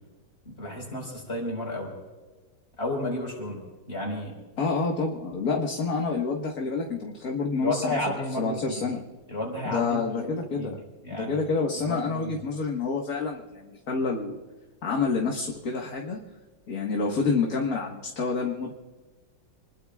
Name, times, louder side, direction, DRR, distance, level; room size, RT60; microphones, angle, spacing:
voice 1, 0.4-1.9 2.8-3.6 3.9-4.3 7.6-8.9 9.3-10.7 11.0-11.4 11.8-12.4, left 1 dB, 30° left, -1 dB, 5.1 m, -32 dB
voice 2, 4.6-8.0 8.3-9.0 9.7-10.8 11.1-14.4 14.8-16.2 16.7-18.7, left 4 dB, 50° left, 0 dB, 1.8 m, -28 dB
28.0 x 20.5 x 2.4 m, 1.3 s
omnidirectional pair, 2.2 m